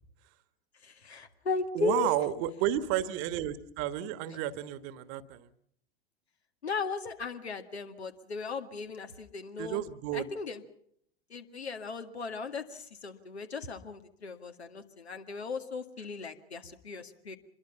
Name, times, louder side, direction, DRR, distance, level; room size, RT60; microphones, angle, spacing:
voice 1, 0.8-2.1 6.6-9.8 10.1-10.6 11.3-17.4, left 4 dB, 75° left, 7 dB, 2.0 m, -36 dB
voice 2, 1.7-5.5 9.6-10.3, right 12 dB, 45° right, 13 dB, 1.5 m, -32 dB
26.0 x 22.0 x 5.7 m, 0.68 s
figure-of-eight pair, 85°, 32 cm